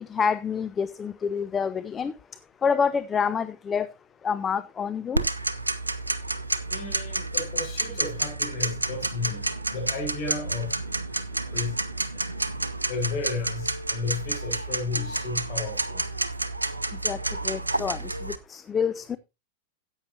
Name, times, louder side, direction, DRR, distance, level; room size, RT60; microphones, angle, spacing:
voice 1, 0.1-2.1 2.6-3.9 4.2-5.2 17.0-17.2 17.4-19.2, left 6 dB, 20° left, 0.4 m, -27 dB
Tick-tock, 5.1-18.4, right 2 dB, 85° right, 0.6 m, -30 dB
voice 2, 6.7-10.8 11.5-11.8 12.9-16.1, left 4 dB, 45° left, 6.4 m, -33 dB
13.5 x 8.8 x 2.8 m
figure-of-eight pair, 90°, 0 cm